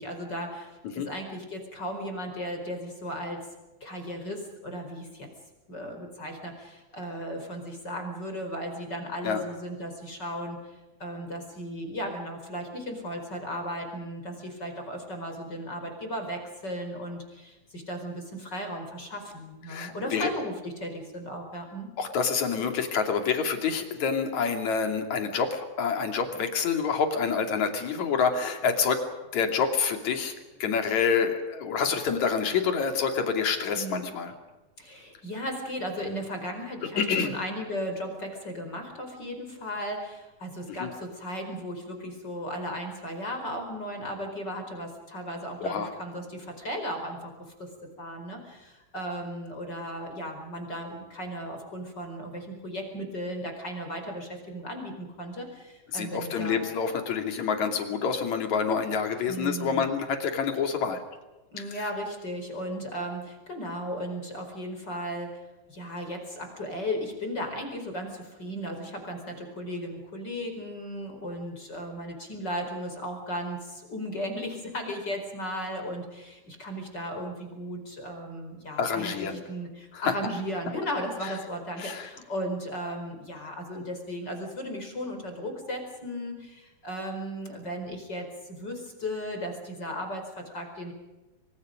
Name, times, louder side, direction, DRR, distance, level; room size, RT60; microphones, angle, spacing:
voice 1, 0.0-3.5 3.8-5.3 5.7-21.9 33.7-34.0 34.8-47.7 48.0-56.6 59.3-59.9 61.5-65.4 65.7-90.9, equal, 30° left, 4 dB, 5.0 m, -36 dB
voice 2, 19.7-20.3 22.0-29.0 29.3-30.3 30.6-34.3 37.0-37.3 40.8-40.9 45.6-45.9 55.9-61.0 61.7-61.8 78.8-79.4 79.9-80.1 81.8-82.1, left 6 dB, 55° left, 5 dB, 3.9 m, -27 dB
27.0 x 26.5 x 5.3 m, 1.1 s
omnidirectional pair, 4.2 m